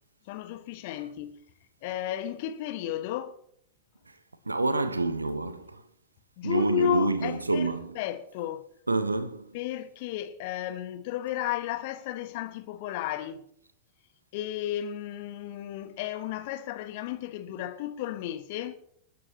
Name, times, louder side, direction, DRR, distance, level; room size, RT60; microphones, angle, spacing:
voice 1, 0.2-1.4 1.8-3.4 6.4-8.7 9.5-13.4 14.3-18.8, left 11 dB, 50° left, 1.6 m, -33 dB
voice 2, 4.4-5.8 6.4-8.0 8.9-9.6, right 2 dB, 80° right, 1.2 m, -28 dB
28.5 x 9.6 x 3.0 m
figure-of-eight pair, 90°, 0 cm